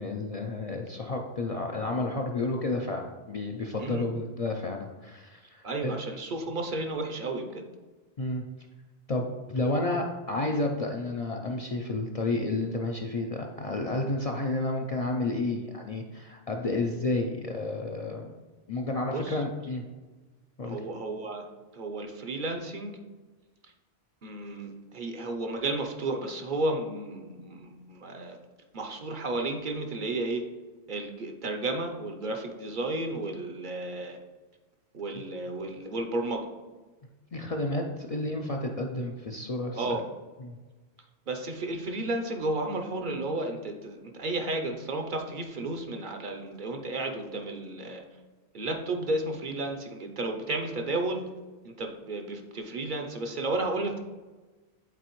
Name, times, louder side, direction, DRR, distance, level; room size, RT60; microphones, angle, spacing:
voice 1, 0.0-6.0 8.2-8.4 9.1-18.3 18.7-19.8 20.6-20.8 35.1-35.2 37.3-40.0 40.4-40.6, left 2 dB, 50° left, 1 dB, 0.5 m, -31 dB
voice 2, 5.6-7.6 19.1-19.4 20.6-21.5 21.7-22.9 24.2-28.4 28.7-30.4 30.9-34.2 34.9-36.5 39.7-40.0 41.3-48.0 48.5-51.2 51.6-54.0, right 2 dB, 55° right, 4 dB, 0.7 m, -32 dB
8.2 x 4.1 x 3.0 m, 1.3 s
omnidirectional pair, 1.1 m